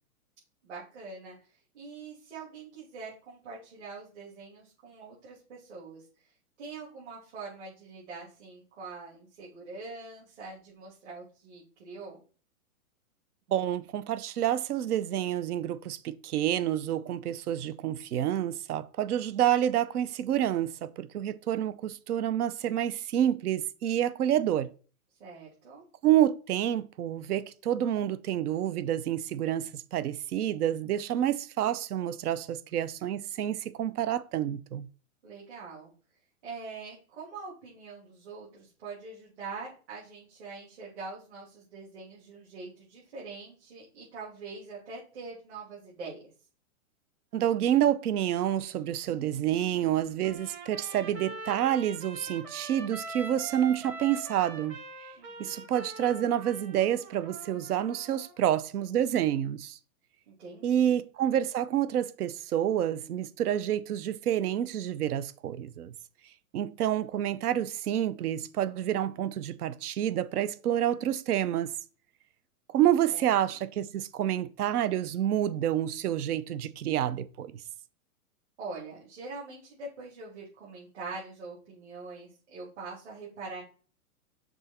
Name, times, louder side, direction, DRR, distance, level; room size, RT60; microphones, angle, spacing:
voice 1, 0.6-6.0 6.6-12.2 25.2-25.8 35.2-35.9 36.4-46.2 55.2-55.7 60.3-61.0 73.1-73.6 78.6-83.6, right 4 dB, 50° right, 3.0 m, -44 dB
voice 2, 13.5-24.7 26.0-34.9 47.3-54.7 55.4-59.8 60.6-65.9 66.5-71.7 72.7-77.5, right 11 dB, 85° right, 0.7 m, -28 dB
Trumpet, 50.2-58.3, right 3 dB, 15° right, 0.7 m, -43 dB
6.1 x 4.0 x 4.2 m
hypercardioid pair, 170°, 44 cm